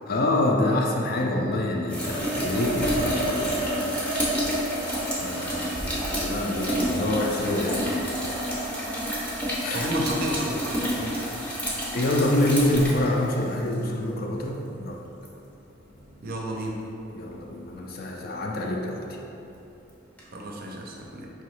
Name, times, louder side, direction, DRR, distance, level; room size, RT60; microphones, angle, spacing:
voice 1, 0.1-3.6 5.2-7.9 9.6-9.9 11.9-15.0 17.1-19.2, left 1 dB, 50° left, 0 dB, 0.4 m, -26 dB
sound 1, 1.9-13.7 15.3-15.4 20.2-20.3, equal, 5° left, 0.6 m, -29 dB
sound 2, 2.6-17.7, equal, 85° left, 1.2 m, -46 dB
voice 2, 9.7-11.2 16.2-16.8 20.3-21.3, right 1 dB, 50° right, 0 dB, 0.5 m, -31 dB
4.6 x 3.0 x 3.0 m, 2.8 s
head